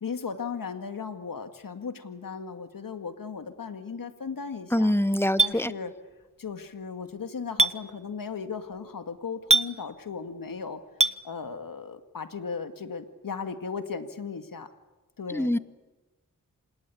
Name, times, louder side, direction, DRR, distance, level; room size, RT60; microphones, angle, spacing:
voice 1, 0.0-4.9 5.4-5.9 6.4-10.8 11.2-14.7 15.2-15.5, left 5 dB, 80° left, 8 dB, 2.1 m, -36 dB
voice 2, 4.7-5.7 15.3-15.6, left 1 dB, 5° left, 13 dB, 1.3 m, -24 dB
Chink clink, 5.4-5.5 7.6-7.7 9.5-9.7 11.0-11.2, right 2 dB, 20° right, 0.9 m, -20 dB
27.0 x 19.5 x 8.5 m, 1.2 s
cardioid pair, 45°, 34 cm